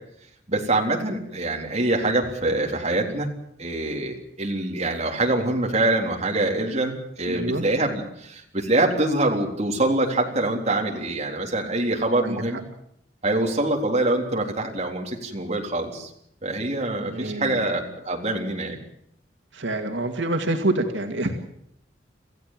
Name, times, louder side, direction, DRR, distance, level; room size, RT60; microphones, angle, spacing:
voice 1, 0.5-3.3 3.6-12.6 13.2-16.1 16.4-18.8, right 2 dB, 35° right, 1 dB, 3.8 m, -25 dB
voice 2, 7.3-7.7 12.2-12.6 17.1-17.7 19.5-21.4, right 2 dB, 80° right, 4 dB, 2.2 m, -27 dB
27.5 x 15.5 x 7.6 m, 0.73 s
head